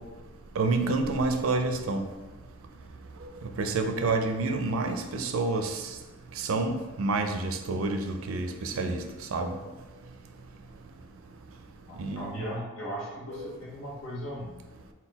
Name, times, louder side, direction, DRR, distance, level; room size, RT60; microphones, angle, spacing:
voice 1, 0.6-2.1 3.6-5.8 6.4-9.0 9.3-9.6 12.0-12.3, right 3 dB, 70° right, 6 dB, 0.4 m, -28 dB
voice 2, 11.9-14.6, equal, 65° left, -7 dB, 0.9 m, -37 dB
4.0 x 2.2 x 4.0 m, 1.2 s
head